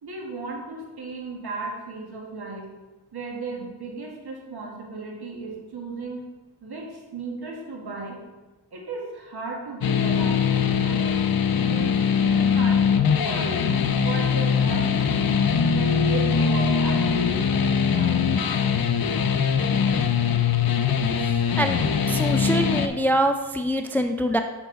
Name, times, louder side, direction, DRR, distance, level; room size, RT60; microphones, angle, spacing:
voice 1, 0.0-2.7 3.1-6.2 6.6-8.2 8.7-11.3 11.7-13.7 14.0-15.4 15.7-18.3, right 3 dB, 65° right, -1 dB, 1.9 m, -35 dB
sound 1, 9.8-22.9, left 6 dB, 55° left, 0.7 m, -22 dB
voice 2, 22.1-24.4, right 1 dB, 5° left, 7 dB, 0.4 m, -24 dB
6.9 x 5.8 x 4.0 m, 1.2 s
cardioid pair, 60°, 42 cm